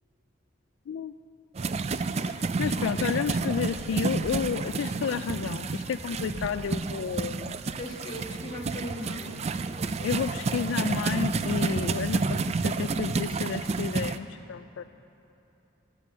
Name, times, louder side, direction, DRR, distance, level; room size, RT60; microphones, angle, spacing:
sound 1, 1.6-14.2, right 4 dB, 30° right, 0.3 m, -30 dB
voice 1, 2.2-7.6 10.0-14.8, left 6 dB, 70° left, 11 dB, 0.3 m, -31 dB
voice 2, 7.8-9.5, left 1 dB, 20° left, -3 dB, 2.0 m, -38 dB
13.0 x 12.0 x 6.0 m, 2.8 s
head